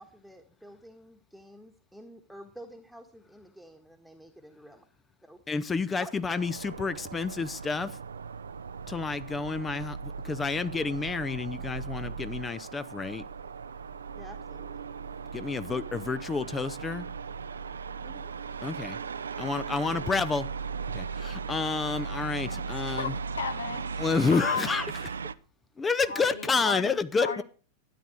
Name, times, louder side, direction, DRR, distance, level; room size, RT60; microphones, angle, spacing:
voice 1, 0.0-4.9 5.2-5.4 6.0-6.1 14.1-14.8 18.0-18.3, right 1 dB, ahead, 1.6 m, -49 dB
voice 2, 5.5-8.0 8.9-13.2 15.3-17.1 18.6-19.0 19.4-20.5 20.9-23.1 24.0-24.9 25.8-27.4, left 4 dB, 15° left, 0.7 m, -29 dB
sound 1, 6.3-25.3, right 5 dB, 70° right, 0.6 m, -38 dB
voice 3, 22.5-24.0 24.3-24.7 26.1-27.4, left 5 dB, 70° left, 1.8 m, -35 dB
12.5 x 9.5 x 6.4 m
figure-of-eight pair, 90°, 0 cm